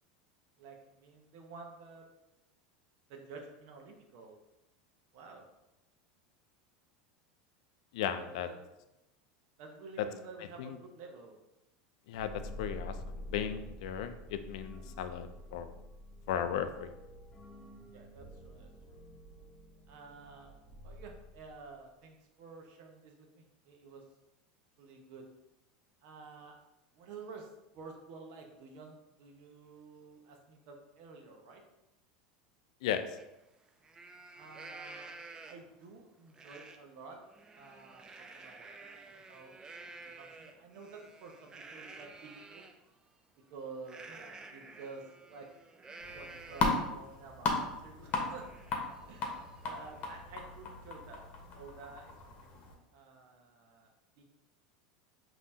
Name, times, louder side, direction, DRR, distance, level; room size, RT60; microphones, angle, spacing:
voice 1, 0.6-2.1 3.1-4.4 5.1-5.4 8.2-8.5 9.6-11.4 17.9-19.0 19.9-24.0 24.8-25.3 26.0-26.6 26.9-27.5 27.7-31.6 34.3-35.2 35.4-37.2 37.5-38.7 39.0-42.6 43.5-45.5 46.1-48.5 49.1-52.1 52.9-53.9 54.2-54.3, right 4 dB, 60° right, 2 dB, 0.9 m, -51 dB
voice 2, 7.9-8.5 10.6-10.8 12.1-12.3 12.6-15.8 16.3-16.9 32.8-33.1, left 9 dB, 75° left, 10 dB, 0.4 m, -36 dB
sound 1, 12.1-21.8, left 1 dB, 20° left, 0.8 m, -48 dB
Livestock farm animals working animals, 33.2-33.3 33.7-35.8 36.3-36.8 37.2-42.7 43.8-46.9 47.4-47.5 47.8-50.2, right 3 dB, 20° right, 0.4 m, -51 dB
sound 2, 46.0-52.7, left 3 dB, 45° left, 1.0 m, -37 dB
5.3 x 2.9 x 2.7 m, 0.94 s
hypercardioid pair, 105°, 4 cm